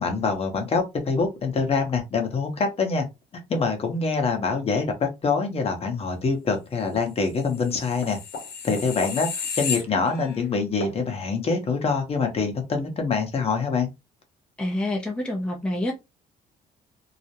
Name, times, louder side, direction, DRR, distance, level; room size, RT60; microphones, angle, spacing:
voice 1, 0.0-3.1 3.3-8.2 8.6-13.9, left 4 dB, 35° left, 0.8 m, -25 dB
sound 1, 7.5-10.4 10.8-11.0, left 6 dB, 80° left, 0.8 m, -33 dB
voice 2, 14.6-15.9, left 1 dB, 5° left, 0.5 m, -27 dB
2.4 x 2.1 x 2.8 m
cardioid pair, 110°, 17 cm